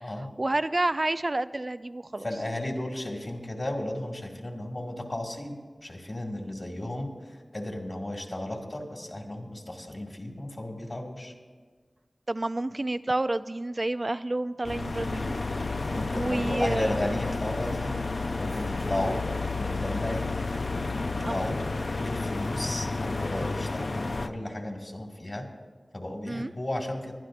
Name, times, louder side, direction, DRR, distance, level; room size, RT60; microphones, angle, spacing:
voice 1, 0.4-2.3 12.3-15.4 16.1-16.9 21.2-21.4 26.3-26.5, right 2 dB, 45° right, 13 dB, 0.4 m, -29 dB
voice 2, 2.2-11.3 15.8-18.0 18.3-19.2 19.6-20.3 20.7-21.5 22.0-25.4 25.9-27.1, left 1 dB, 50° left, 1 dB, 2.2 m, -34 dB
sound 1, 14.6-24.3, left 3 dB, 70° left, 0.5 m, -31 dB
21.0 x 12.0 x 2.6 m, 1.5 s
wide cardioid pair, 45°, 0 cm